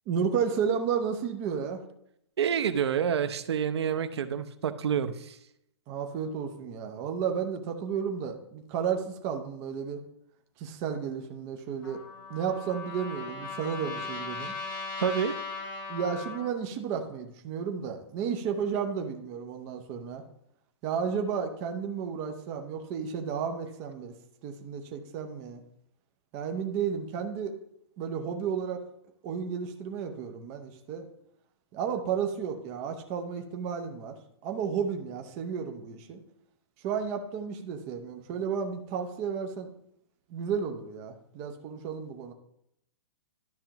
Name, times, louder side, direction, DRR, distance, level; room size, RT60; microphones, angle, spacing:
voice 1, 0.1-1.8 5.9-10.0 10.6-12.0 12.3-14.6 15.9-20.2 20.8-24.1 24.4-25.6 26.3-27.6 28.0-28.8 29.2-31.0 31.7-34.1 34.4-36.2 36.8-39.7 40.3-42.3, right 7 dB, 20° right, 5 dB, 0.7 m, -32 dB
voice 2, 2.4-5.4 15.0-15.3, right 8 dB, 70° right, 10 dB, 0.7 m, -28 dB
Trumpet, 11.8-16.5, left 4 dB, 50° left, 3.4 m, -38 dB
12.5 x 5.8 x 2.9 m, 0.77 s
hypercardioid pair, 175°, 14 cm